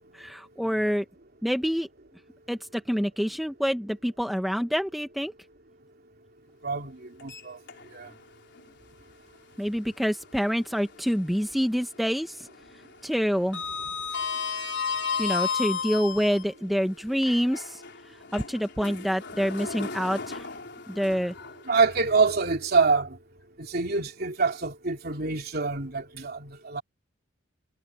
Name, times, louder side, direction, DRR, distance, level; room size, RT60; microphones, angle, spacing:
voice 1, 0.1-1.1 1.4-1.9 2.5-5.3 9.6-12.5 13.0-13.6 15.2-17.8 18.3-20.5 20.9-21.3, equal, ahead, 1.4 m, -27 dB
voice 2, 6.6-7.6 7.9-8.1 21.7-23.2 23.6-26.8, right 4 dB, 55° right, 3.2 m, -26 dB
Sliding door, 7.2-8.2 8.6-8.7 10.4-11.4 11.7-12.1 12.3-16.4 17.1-22.3, left 5 dB, 60° left, 4.2 m, -34 dB
head